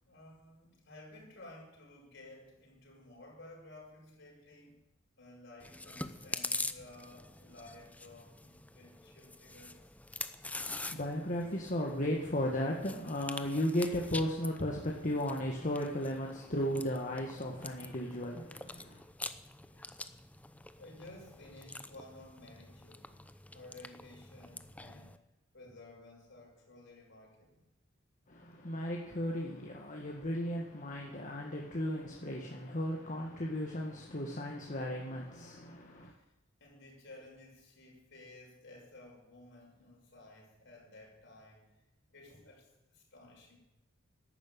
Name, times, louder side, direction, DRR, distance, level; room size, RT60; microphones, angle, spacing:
voice 1, 0.0-4.8 5.2-9.9 19.7-19.9 20.8-23.2 23.5-25.2 25.5-27.7 36.0-36.1 36.6-41.8 42.1-43.6, left 2 dB, 65° left, -2 dB, 6.6 m, -55 dB
Chewing mastication, 5.6-25.2, left 2 dB, 5° left, 0.7 m, -45 dB
voice 2, 10.6-19.0 28.3-36.1, equal, 40° left, -1 dB, 1.8 m, -35 dB
13.0 x 12.0 x 8.9 m, 0.92 s
head